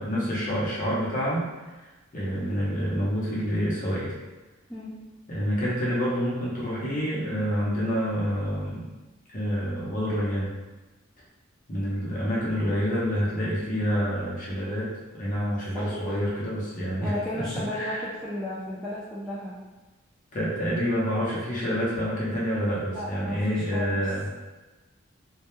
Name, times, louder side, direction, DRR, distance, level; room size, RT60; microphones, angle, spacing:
voice 1, 0.0-1.5 1.8-1.9 2.1-4.1 5.3-8.9 9.3-10.5 11.7-18.1 20.3-24.3, equal, 40° left, -6 dB, 0.6 m, -28 dB
voice 2, 15.7-16.2 17.0-19.5 22.7-24.1, left 1 dB, 5° left, -10 dB, 0.3 m, -34 dB
2.1 x 2.1 x 2.9 m, 1.2 s
head